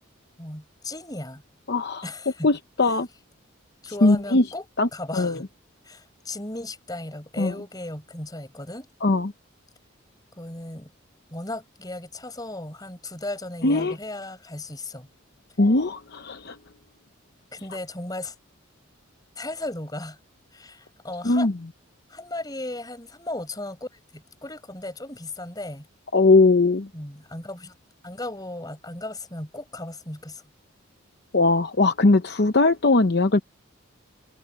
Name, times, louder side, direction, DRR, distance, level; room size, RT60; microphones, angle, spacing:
voice 1, 0.4-1.4 2.0-2.5 2.8-3.0 3.8-4.6 4.9-5.5 5.8-8.9 10.3-10.9 11.3-15.1 17.5-18.4 19.4-20.2 20.5-21.5 22.1-25.9 26.9-27.7 28.0-30.4, left 2 dB, 20° left, 5.7 m, -36 dB
voice 2, 1.7-2.0 2.4-3.1 4.0-4.4 4.8-5.4 7.4-7.5 9.0-9.3 13.6-13.9 15.6-16.6 21.2-21.5 26.1-26.9 31.3-33.4, left 3 dB, 50° left, 0.8 m, -20 dB
head